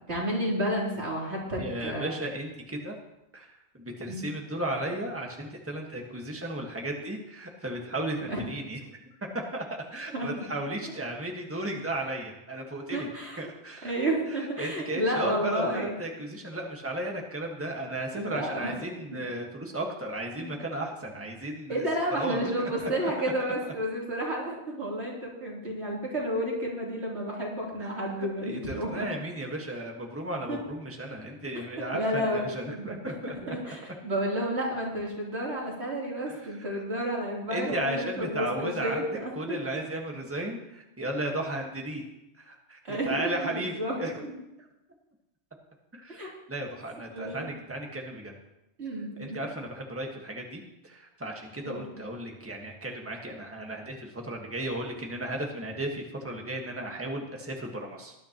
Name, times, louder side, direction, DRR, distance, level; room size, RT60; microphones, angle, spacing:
voice 1, 0.1-2.1 4.1-4.3 8.3-8.4 10.1-10.3 12.9-13.4 13.8-15.9 18.1-18.7 20.4-20.5 21.7-29.1 30.5-30.6 31.6-31.7 31.9-32.4 32.7-39.8 42.8-44.1 46.1-46.3 47.1-47.5 48.8-49.5 51.6-51.8, equal, 90° right, -4 dB, 3.6 m, -31 dB
voice 2, 1.6-3.0 3.3-8.8 9.2-13.1 13.4-13.9 14.3-21.8 22.2-23.1 27.8-27.9 28.4-33.5 36.3-36.8 37.5-39.0 39.3-42.0 42.4-44.2 45.9-48.3 49.2-58.1, right 1 dB, 10° right, 0 dB, 1.5 m, -35 dB
18.5 x 11.0 x 3.0 m, 0.90 s
omnidirectional pair, 1.1 m